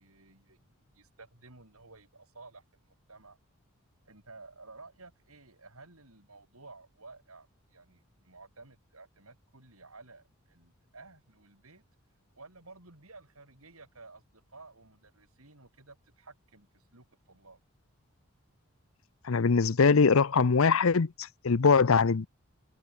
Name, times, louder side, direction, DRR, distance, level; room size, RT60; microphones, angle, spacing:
voice 1, 0.0-3.4 4.0-11.8 12.4-17.6, right 3 dB, 85° right, 7.2 m, -54 dB
voice 2, 19.3-21.1 21.4-22.3, left 5 dB, 75° left, 0.7 m, -22 dB
head